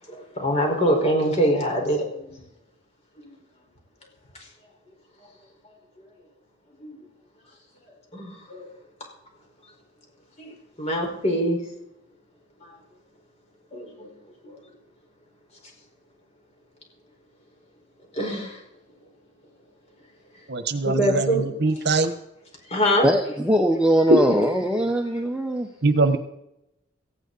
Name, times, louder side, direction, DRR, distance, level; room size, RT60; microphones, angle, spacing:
voice 1, 0.1-2.4 3.2-3.3 4.4-4.5 6.8-6.9 8.1-8.7 10.4-11.6 12.6-12.8 13.7-14.1 14.4-14.6 18.1-18.6 20.8-21.4 22.6-23.1, equal, 35° left, 1 dB, 4.9 m, -24 dB
voice 2, 20.5-22.1 24.1-24.2 25.8-26.2, right 2 dB, 60° right, 10 dB, 1.2 m, -21 dB
voice 3, 23.0-25.7, equal, 5° right, 2 dB, 0.9 m, -21 dB
18.0 x 15.0 x 4.1 m, 0.82 s
head